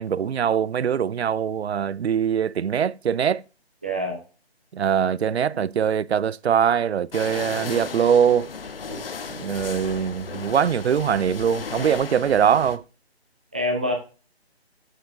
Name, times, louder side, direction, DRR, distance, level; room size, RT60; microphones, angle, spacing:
voice 1, 0.0-3.4 4.7-8.5 9.4-12.8, right 8 dB, 75° right, 0.5 m, -22 dB
voice 2, 3.8-4.2 8.9-9.0 13.5-13.9, equal, 10° right, 0.6 m, -26 dB
sound 1, 7.1-12.8, left 5 dB, 60° left, 1.0 m, -35 dB
7.9 x 6.7 x 3.8 m
figure-of-eight pair, 160°, 32 cm